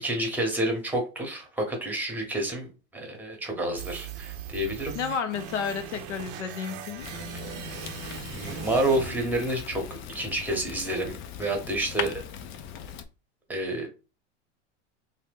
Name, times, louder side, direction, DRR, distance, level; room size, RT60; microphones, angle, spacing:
voice 1, 0.0-4.9 8.2-12.1 13.5-13.9, right 1 dB, 5° right, 0.9 m, -29 dB
sound 1, 3.8-9.8, right 8 dB, 45° right, 0.5 m, -40 dB
voice 2, 4.9-7.1, left 6 dB, 80° left, 0.7 m, -31 dB
Fire, 7.0-13.1, left 8 dB, 35° left, 0.4 m, -39 dB
2.7 x 2.2 x 3.4 m
hypercardioid pair, 115°, 35 cm